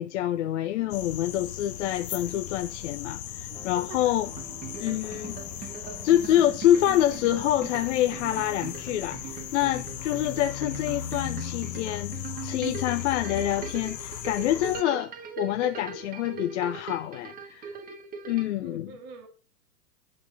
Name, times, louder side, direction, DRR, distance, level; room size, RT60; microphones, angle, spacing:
voice 1, 0.0-4.3 4.8-5.7 6.0-17.7 18.3-18.9, left 12 dB, 45° left, 0.6 m, -27 dB
sound 1, 0.9-14.8, left 11 dB, 75° left, 0.8 m, -37 dB
sound 2, 3.5-9.1, left 2 dB, 5° left, 1.6 m, -49 dB
sound 3, 4.3-18.5, right 6 dB, 15° right, 1.0 m, -41 dB
voice 2, 18.6-19.3, right 5 dB, 40° right, 2.1 m, -46 dB
10.5 x 4.3 x 5.4 m
hypercardioid pair, 115°, 50 cm